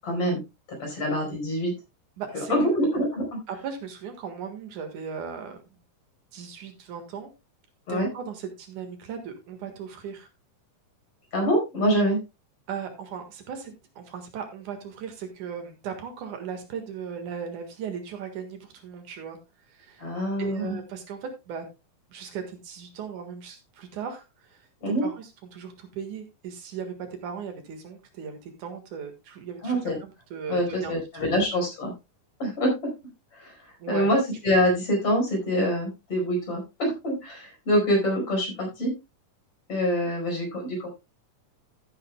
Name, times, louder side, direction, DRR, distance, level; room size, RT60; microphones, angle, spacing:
voice 1, 0.0-0.4 0.8-1.7 2.3-3.4 7.9-8.1 11.3-12.2 20.0-20.8 24.8-25.1 29.6-30.0 30.5-31.9 32.4-32.7 33.3-38.9 39.7-40.9, equal, 45° left, 1 dB, 5.7 m, -25 dB
voice 2, 2.2-2.5 3.5-5.8 6.3-7.3 7.9-10.3 12.7-19.4 19.7-20.0 20.4-21.6 22.1-24.7 25.0-31.3 31.5-31.6 33.8-34.1, right 7 dB, 70° right, 6 dB, 3.1 m, -37 dB
14.5 x 9.6 x 2.3 m, 0.24 s
omnidirectional pair, 3.7 m